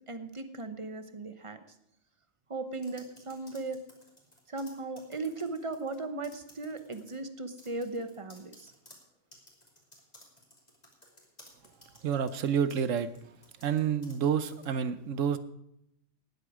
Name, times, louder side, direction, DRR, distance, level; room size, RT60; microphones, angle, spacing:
voice 1, 0.1-1.6 2.5-3.8 4.5-8.7, right 3 dB, 25° right, 9 dB, 0.9 m, -37 dB
sound 1, 2.7-6.0 6.2-7.2 7.6-14.2 14.5-14.7, left 1 dB, 30° left, 3.1 m, -57 dB
voice 2, 12.0-13.1 13.6-15.4, right 7 dB, 75° right, 12 dB, 1.1 m, -29 dB
18.5 x 8.2 x 4.9 m, 0.79 s
omnidirectional pair, 1.4 m